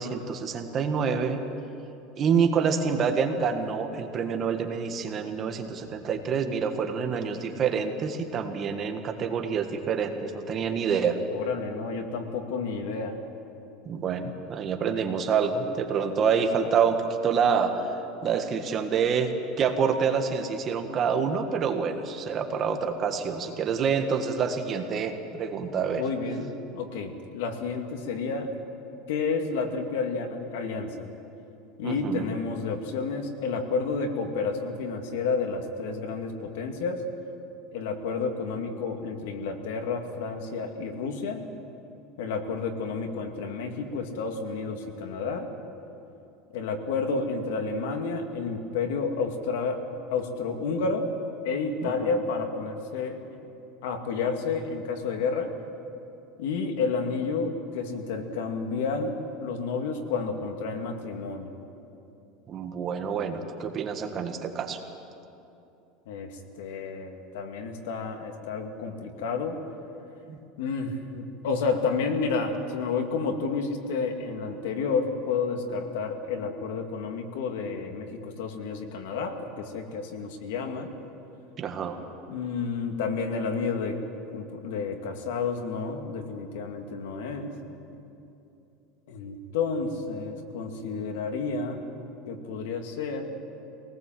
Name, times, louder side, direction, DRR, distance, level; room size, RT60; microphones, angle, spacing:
voice 1, 0.0-1.4 2.2-11.2 13.8-17.9 18.2-19.3 19.6-26.0 31.8-32.3 51.8-52.2 62.5-64.8 70.3-70.4 81.6-82.0, right 6 dB, 30° right, 5 dB, 1.5 m, -27 dB
voice 2, 11.3-13.2 26.0-26.5 26.7-28.5 29.1-31.1 31.8-37.0 37.7-41.5 42.2-45.5 46.5-49.8 50.1-51.1 51.4-53.2 53.8-55.5 56.4-61.5 66.1-69.6 70.6-80.9 82.3-84.0 84.3-87.5 89.1-91.8 92.3-93.3, left 4 dB, 85° left, 4 dB, 2.5 m, -30 dB
24.0 x 19.0 x 7.8 m, 2.8 s
supercardioid pair, 165°, 0 cm